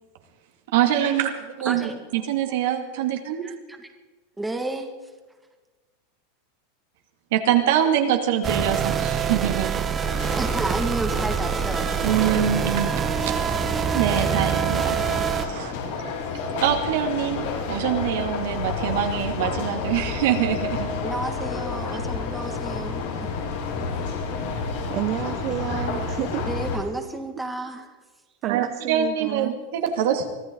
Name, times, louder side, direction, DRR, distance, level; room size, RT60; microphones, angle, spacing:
voice 1, 0.7-3.5 7.3-9.7 12.0-12.9 13.2-13.5 13.9-15.0 15.3-15.7 16.6-20.9 28.5-30.3, right 9 dB, 70° right, 4 dB, 2.5 m, -24 dB
voice 2, 1.7-2.0 2.5-2.6 3.4-3.9 4.4-5.0 10.3-12.3 21.0-23.1 24.6-24.7 26.4-27.9, right 2 dB, 5° right, 4 dB, 2.0 m, -32 dB
sound 1, 8.4-15.5, right 7 dB, 25° right, 1.1 m, -25 dB
sound 2, 10.0-26.8, left 4 dB, 75° left, 5.6 m, -30 dB
voice 3, 24.9-26.5 28.3-29.6, right 14 dB, 45° right, 10 dB, 0.7 m, -30 dB
24.5 x 14.5 x 4.0 m, 1.3 s
supercardioid pair, 125°, 0 cm